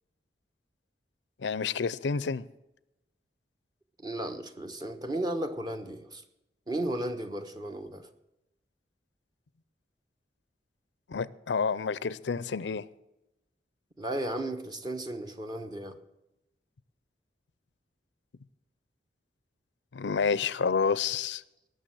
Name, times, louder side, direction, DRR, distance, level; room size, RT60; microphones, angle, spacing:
voice 1, 1.4-2.5 11.1-12.9 19.9-21.4, left 5 dB, 85° left, 0.5 m, -29 dB
voice 2, 4.0-6.2 6.7-8.1 14.0-16.0, right 1 dB, 25° right, 1.1 m, -34 dB
18.5 x 6.7 x 7.8 m
head